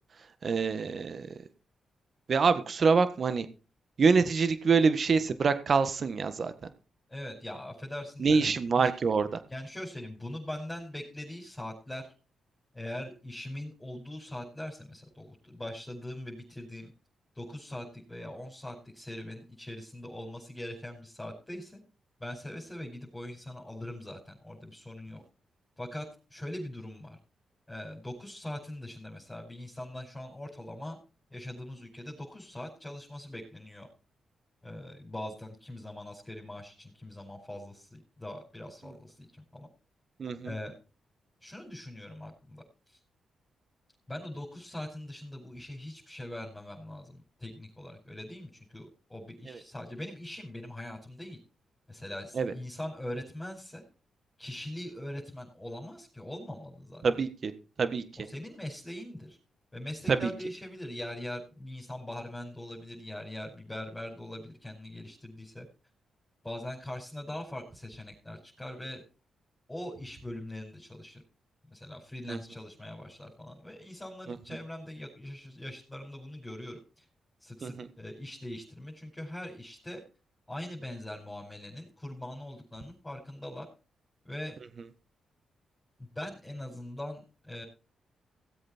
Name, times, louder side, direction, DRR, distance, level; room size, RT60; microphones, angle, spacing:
voice 1, 0.4-1.3 2.3-3.5 4.0-6.5 8.2-9.3 40.2-40.5 52.3-52.5 57.0-57.5 57.8-58.0 60.1-60.3 72.3-72.4 77.6-77.9, right 5 dB, 55° right, 11 dB, 1.6 m, -25 dB
voice 2, 7.1-8.9 9.5-12.0 12.7-16.9 17.3-21.8 22.2-25.2 25.8-27.2 27.7-31.0 31.3-33.9 34.6-39.7 40.4-40.7 41.4-43.0 44.1-51.4 51.9-53.8 54.4-57.0 58.2-59.4 59.7-65.7 66.4-69.0 69.7-71.2 71.7-77.1 77.4-80.0 80.5-83.7 84.2-84.6 86.0-87.6, left 1 dB, 15° left, -3 dB, 5.5 m, -41 dB
18.0 x 8.0 x 4.5 m, 0.34 s
supercardioid pair, 60°, 0 cm